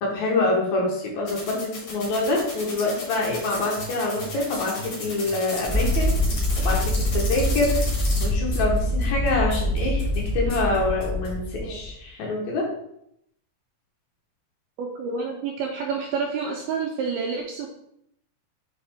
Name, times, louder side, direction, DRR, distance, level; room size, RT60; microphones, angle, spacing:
voice 1, 0.0-6.1 6.6-7.8 8.2-12.7, left 2 dB, 85° left, -1 dB, 1.6 m, -26 dB
sound 1, 1.3-8.3, left 3 dB, 55° left, 1.7 m, -35 dB
sound 2, 3.5-11.4, right 2 dB, 30° left, 2.1 m, -39 dB
sound 3, 5.7-11.9, left 1 dB, 10° left, 0.8 m, -24 dB
voice 2, 14.8-17.7, right 5 dB, 85° right, 1 dB, 2.2 m, -29 dB
5.7 x 5.3 x 3.5 m, 0.74 s
omnidirectional pair, 4.9 m